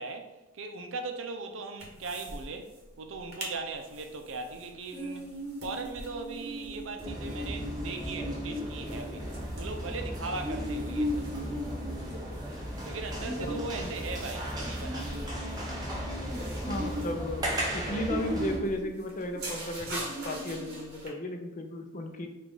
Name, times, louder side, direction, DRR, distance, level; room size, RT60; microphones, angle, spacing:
voice 1, 0.0-2.7 3.0-11.3 12.8-15.2, right 3 dB, 75° right, 0.6 m, -39 dB
sound 1, 1.8-2.4 2.7-2.8 3.1-3.5 3.9-21.1, equal, 55° right, 1.3 m, -38 dB
sound 2, 7.0-18.6, equal, 20° right, 1.0 m, -36 dB
voice 2, 16.6-17.5 17.7-22.3, left 1 dB, 40° left, 0.5 m, -35 dB
5.0 x 2.4 x 3.7 m
head